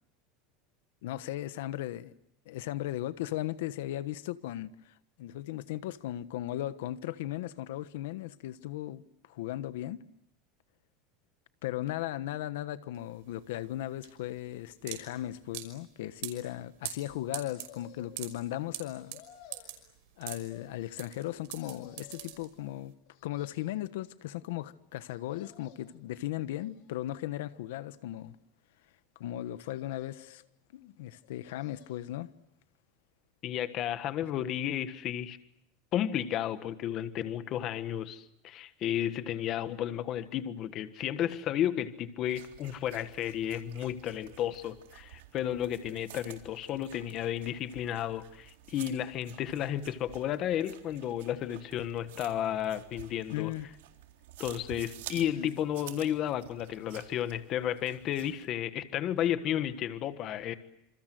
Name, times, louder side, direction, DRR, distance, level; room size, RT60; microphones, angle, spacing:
voice 1, 1.0-2.1 2.5-10.0 11.6-19.2 20.2-22.9 23.2-28.4 29.2-30.4 30.7-32.3 53.3-53.7 55.1-55.6, left 14 dB, 75° left, 1.2 m, -37 dB
sound 1, 12.9-22.9, right 15 dB, 60° right, 5.6 m, -43 dB
sound 2, 17.5-18.3 18.9-19.8 20.5-21.3 21.6-22.4 23.1-23.9 25.1-26.0 26.5-27.2 27.9-28.6 29.7-30.5 31.2-32.1 32.5-32.6, left 11 dB, 50° left, 4.6 m, -56 dB
voice 2, 33.4-35.4 35.9-53.5 54.4-60.5, left 11 dB, 30° left, 1.5 m, -33 dB
sound 3, 42.2-58.5, right 13 dB, 85° right, 3.7 m, -51 dB
28.0 x 27.5 x 7.8 m
supercardioid pair, 180°, 0 cm